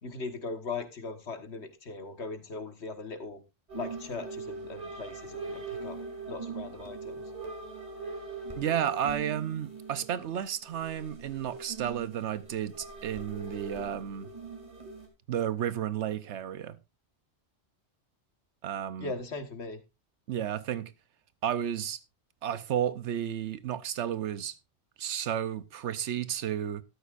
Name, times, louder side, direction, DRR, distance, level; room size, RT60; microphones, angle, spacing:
voice 1, 0.0-3.4 3.8-6.0 6.3-7.3 19.0-19.8, left 3 dB, 75° left, 1.8 m, -39 dB
sound 1, 3.7-15.1, right 4 dB, 35° right, 2.9 m, -41 dB
voice 2, 8.6-14.3 15.3-16.8 18.6-19.1 20.3-20.9 21.4-22.0 22.4-24.5 25.0-26.8, right 10 dB, 85° right, 1.1 m, -32 dB
13.0 x 12.5 x 2.5 m
omnidirectional pair, 1.1 m